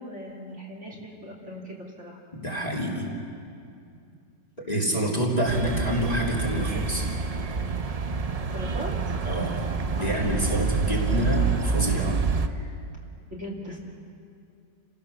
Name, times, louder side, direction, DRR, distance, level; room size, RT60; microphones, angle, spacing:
voice 1, 0.0-2.2 4.6-4.7 8.5-9.2 10.0-10.5 10.9-11.5 12.5-12.7 13.3-13.8, equal, 40° right, -3 dB, 3.3 m, -39 dB
voice 2, 2.3-3.1 4.7-7.1 9.2-9.6 10.0-11.4 11.7-12.2, right 1 dB, 20° left, -4 dB, 3.1 m, -27 dB
sound 1, 5.5-12.5, right 4 dB, 70° right, 0.3 m, -27 dB
29.5 x 17.5 x 6.9 m, 2.5 s
omnidirectional pair, 1.9 m